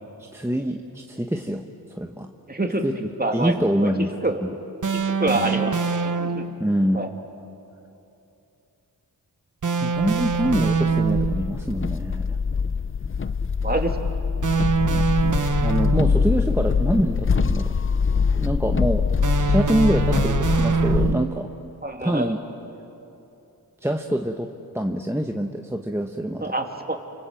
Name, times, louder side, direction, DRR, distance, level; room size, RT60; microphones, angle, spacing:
voice 1, 0.3-1.6 1.9-2.3 2.8-4.1 4.4-4.6 5.3-5.5 6.6-7.0 9.8-12.4 14.8-17.7 18.3-19.1 19.3-21.5 22.0-22.4 23.8-26.5, right 1 dB, 5° right, 4 dB, 1.2 m, -25 dB
voice 2, 2.5-2.8 3.2-3.5 3.8-3.9 4.2-4.4 4.9-5.7 6.2-6.4 6.9-7.1 13.6-13.9 19.9-20.0 21.8-22.3 26.4-27.0, right 2 dB, 25° right, 3 dB, 2.7 m, -26 dB
sound 1, 4.8-6.6 9.6-11.5 14.4-16.4 19.2-21.4, right 5 dB, 50° right, 1.1 m, -24 dB
sound 2, 10.0-21.1, left 5 dB, 35° left, 0.6 m, -24 dB
29.0 x 26.0 x 7.7 m, 2.8 s
wide cardioid pair, 65°, 38 cm